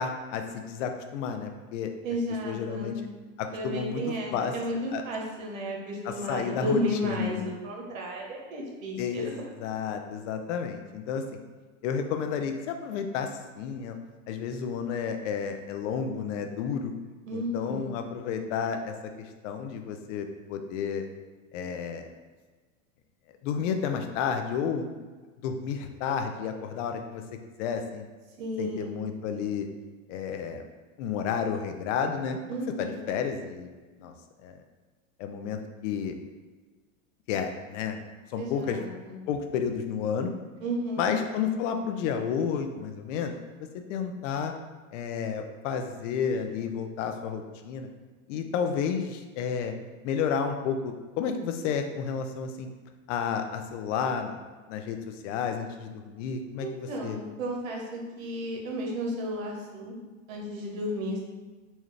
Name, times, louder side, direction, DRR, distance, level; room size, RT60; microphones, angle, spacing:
voice 1, 0.0-1.9 2.4-3.0 3.4-4.5 4.9-5.0 6.1-7.5 9.0-9.3 9.6-11.3 11.8-13.3 13.6-14.0 14.3-16.9 17.3-21.1 21.5-22.1 23.4-24.9 25.4-27.2 27.6-28.1 28.6-29.7 30.1-30.7 31.0-32.4 32.8-33.7 34.0-34.1 34.4-34.6 35.2-36.1 37.3-38.0 38.3-38.8 39.3-40.3 41.0-43.4 43.7-44.5 44.9-47.9 48.3-49.7 50.0-52.7 53.1-54.4 54.7-57.2, left 7 dB, 65° left, 6 dB, 0.6 m, -31 dB
voice 2, 2.0-3.0 3.5-9.2 17.3-17.9 28.4-29.0 32.5-33.0 38.4-39.2 40.6-41.2 56.6-59.9 60.3-61.2, equal, 85° right, -1 dB, 1.1 m, -33 dB
4.2 x 2.4 x 3.1 m, 1.3 s
supercardioid pair, 125°, 39 cm